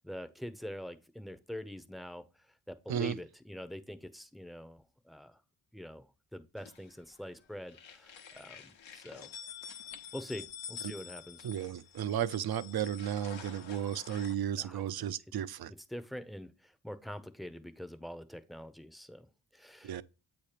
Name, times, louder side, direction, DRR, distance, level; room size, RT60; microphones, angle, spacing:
voice 1, 0.0-2.2 2.7-5.4 5.7-9.3 10.1-11.5 14.6-14.8 15.9-19.3 19.5-20.0, equal, ahead, 0.6 m, -45 dB
sound 1, 6.6-7.3 7.6-14.4, left 8 dB, 75° left, 1.0 m, -48 dB
voice 2, 11.4-15.7 19.8-20.0, right 10 dB, 55° right, 0.6 m, -34 dB
8.1 x 3.0 x 5.0 m
cardioid pair, 55°, 46 cm